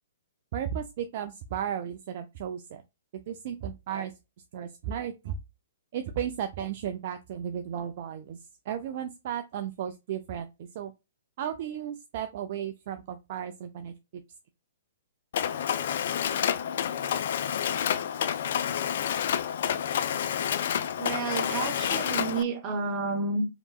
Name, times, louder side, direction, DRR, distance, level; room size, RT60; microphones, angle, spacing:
voice 1, 0.5-2.8 3.3-4.1 4.5-5.3 5.9-8.4 8.7-10.9 11.4-14.2, right 9 dB, 50° right, 0.4 m, -34 dB
Mechanisms, 15.3-22.4, left 9 dB, 55° left, 0.3 m, -29 dB
voice 2, 21.0-23.4, right 4 dB, 30° right, 1.0 m, -30 dB
5.1 x 2.9 x 2.3 m
figure-of-eight pair, 120°, 0 cm